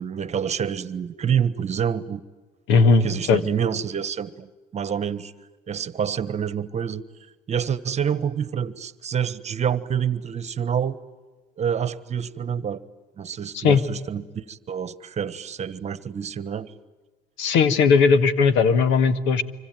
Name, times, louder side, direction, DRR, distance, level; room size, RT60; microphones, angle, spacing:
voice 1, 0.0-2.2 3.0-11.0 11.6-12.8 13.2-16.7, right 8 dB, 35° right, 1.4 m, -27 dB
voice 2, 2.7-3.4 13.5-13.8 17.4-19.4, left 5 dB, 70° left, 1.9 m, -18 dB
25.5 x 25.0 x 9.2 m
supercardioid pair, 100°, 20 cm